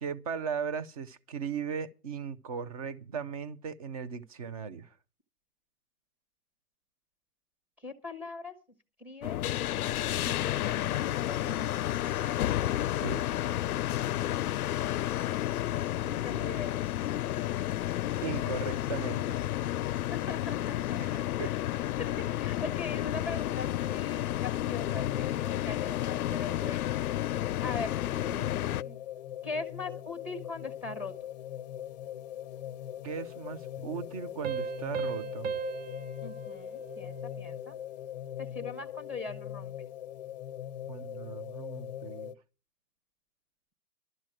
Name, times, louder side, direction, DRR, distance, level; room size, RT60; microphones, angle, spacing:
voice 1, 0.0-4.9 12.9-13.5 18.2-19.4 21.0-21.5 33.0-35.5 40.9-42.3, right 6 dB, 25° right, 0.6 m, -37 dB
voice 2, 7.8-8.5 9.0-9.4 10.2-12.5 16.0-16.8 20.1-21.6 22.0-22.1 22.4-27.9 28.2-29.0 29.4-31.3 36.2-37.8 38.4-39.7, left 3 dB, 5° right, 0.9 m, -41 dB
sound 1, 9.2-28.8, left 13 dB, 70° left, 0.5 m, -31 dB
sound 2, 24.8-42.3, left 11 dB, 30° left, 0.6 m, -41 dB
sound 3, 34.4-37.7, right 6 dB, 55° right, 0.8 m, -37 dB
12.0 x 7.3 x 7.7 m
hypercardioid pair, 150°, 46 cm